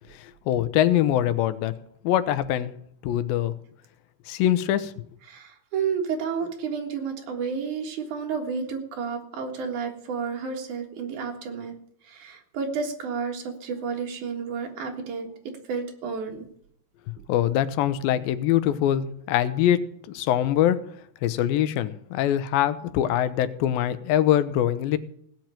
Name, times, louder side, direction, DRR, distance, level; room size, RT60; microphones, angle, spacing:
voice 1, 0.2-1.7 2.0-2.7 3.0-3.5 4.3-4.9 17.3-20.8 21.2-25.0, left 11 dB, 90° left, 14 dB, 2.6 m, -23 dB
voice 2, 5.3-11.7 12.0-15.3 15.7-16.4, right 5 dB, 60° right, 3 dB, 3.0 m, -31 dB
17.0 x 5.9 x 8.8 m, 0.67 s
omnidirectional pair, 4.1 m